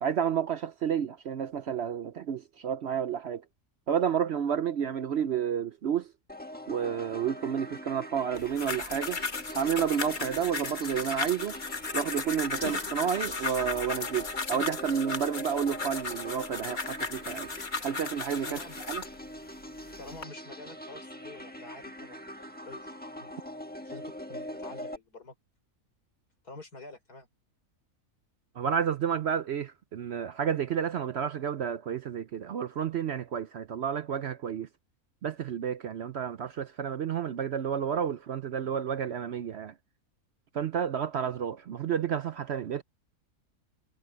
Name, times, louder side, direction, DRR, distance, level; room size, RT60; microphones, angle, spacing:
voice 1, 0.0-3.4 3.9-6.1 6.7-9.2 9.5-11.6 11.9-17.5 17.8-18.6 18.9-19.0 28.6-34.7 35.2-39.7 40.5-42.8, right 8 dB, 60° right, 0.7 m, -30 dB
sound 1, 6.3-25.0, equal, 5° left, 1.3 m, -43 dB
sound 2, 8.3-19.2 19.8-20.2, left 4 dB, 35° left, 1.4 m, -36 dB
voice 2, 20.0-23.3 23.8-25.4 26.4-27.3, left 2 dB, 90° left, 5.7 m, -48 dB
omnidirectional pair, 1.6 m